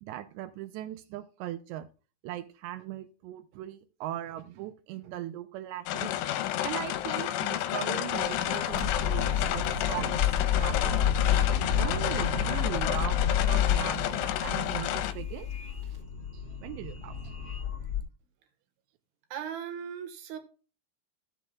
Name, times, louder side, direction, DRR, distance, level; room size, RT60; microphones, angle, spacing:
voice 1, 0.0-1.9 2.2-6.1 6.6-10.2 10.5-11.1 11.8-15.5 16.3-17.4, right 12 dB, 85° right, 9 dB, 2.5 m, -39 dB
sound 1, 5.9-15.1, left 12 dB, 85° left, 3.1 m, -31 dB
sound 2, 8.1-18.0, left 8 dB, 35° left, 2.1 m, -30 dB
voice 2, 19.3-20.4, right 8 dB, 65° right, 5 dB, 3.0 m, -37 dB
16.5 x 7.0 x 2.3 m, 0.35 s
omnidirectional pair, 5.6 m